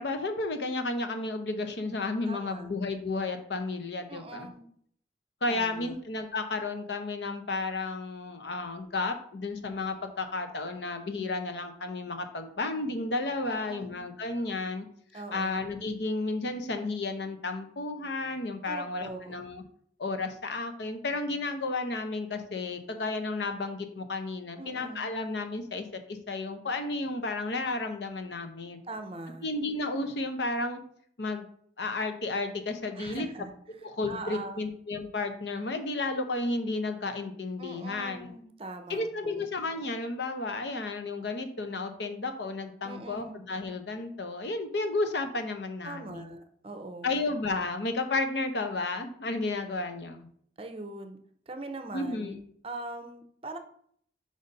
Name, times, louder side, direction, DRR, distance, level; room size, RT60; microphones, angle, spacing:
voice 1, 0.0-4.5 5.4-14.8 15.1-19.6 20.0-28.8 29.4-30.8 31.2-31.5 31.8-33.3 33.8-38.3 38.9-46.3 47.0-50.3 51.9-52.4, left 3 dB, 75° left, 7 dB, 0.8 m, -32 dB
voice 2, 2.3-2.7 4.1-4.7 5.5-6.0 13.4-14.0 15.1-15.5 18.7-19.3 24.6-25.1 28.9-29.5 33.0-34.7 37.6-39.5 42.8-43.4 45.8-47.2 50.6-51.2 51.5-52.4 52.6-53.6, right 2 dB, 30° right, 7 dB, 0.6 m, -42 dB
5.0 x 4.1 x 5.2 m, 0.62 s
head